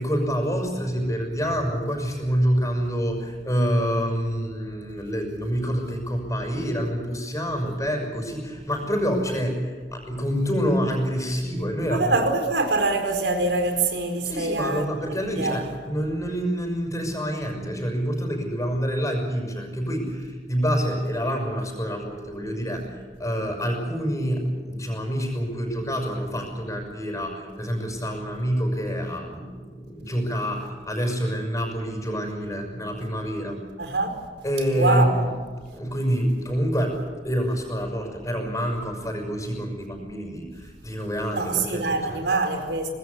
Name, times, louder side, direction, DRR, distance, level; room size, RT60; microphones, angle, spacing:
voice 1, 0.0-12.2 14.2-33.6 34.4-35.3 35.7-37.0 37.2-42.2, equal, 20° left, 4 dB, 6.1 m, -27 dB
voice 2, 11.9-14.9 15.4-15.8 33.8-34.2 34.7-35.1 41.3-42.9, right 3 dB, 80° right, 6 dB, 4.4 m, -24 dB
25.0 x 20.0 x 8.4 m, 1.5 s
head